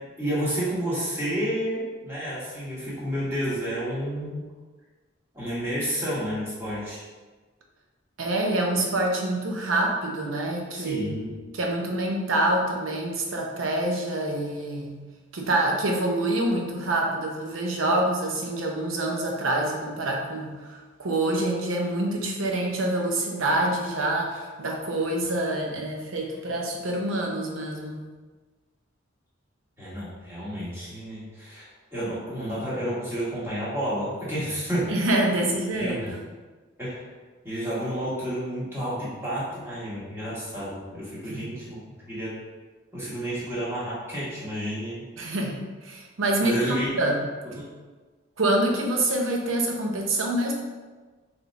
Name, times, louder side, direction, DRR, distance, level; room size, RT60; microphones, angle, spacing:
voice 1, 0.2-4.4 5.3-7.0 10.7-11.4 29.8-34.9 35.7-36.1 36.8-37.0 37.4-42.4 42.9-45.0 46.4-46.9 47.5-47.7, equal, 15° right, -9 dB, 1.5 m, -30 dB
voice 2, 8.2-11.2 11.5-15.0 15.3-28.0 34.9-36.2 41.3-41.6 45.2-47.2 48.4-50.6, right 1 dB, 85° right, 0 dB, 0.7 m, -26 dB
4.8 x 3.2 x 2.6 m, 1.3 s
head